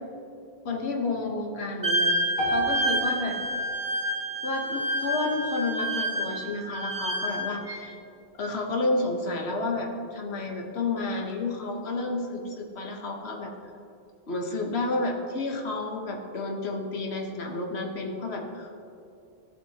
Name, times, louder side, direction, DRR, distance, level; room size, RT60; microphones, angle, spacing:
voice 1, 0.6-3.4 4.4-8.0 8.3-13.5 14.3-18.8, left 2 dB, 85° left, 1 dB, 1.4 m, -31 dB
Wind instrument woodwind instrument, 1.8-7.8, right 1 dB, 35° right, 1.0 m, -29 dB
sound 1, 2.4-6.5, right 1 dB, 55° left, 2.3 m, -35 dB
14.0 x 7.6 x 2.8 m, 2.7 s
omnidirectional pair, 1.1 m